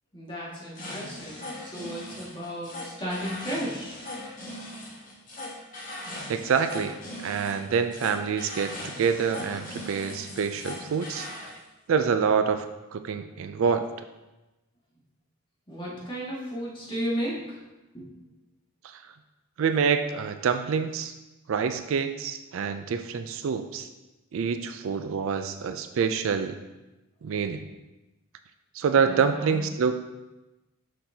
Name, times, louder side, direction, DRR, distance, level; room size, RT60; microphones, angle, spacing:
voice 1, 0.1-3.9 15.7-17.6 17.9-18.1 29.0-29.6, equal, 20° left, -7 dB, 1.8 m, -34 dB
sound 1, 0.7-11.6, left 1 dB, 40° left, 1.5 m, -39 dB
voice 2, 6.3-6.9 7.2-11.3 11.9-12.7 12.9-13.8 18.8-19.0 19.6-21.1 21.5-23.9 24.3-26.5 27.2-27.7 28.7-30.0, right 6 dB, 65° right, 9 dB, 0.4 m, -26 dB
6.5 x 5.8 x 2.7 m, 1.0 s
head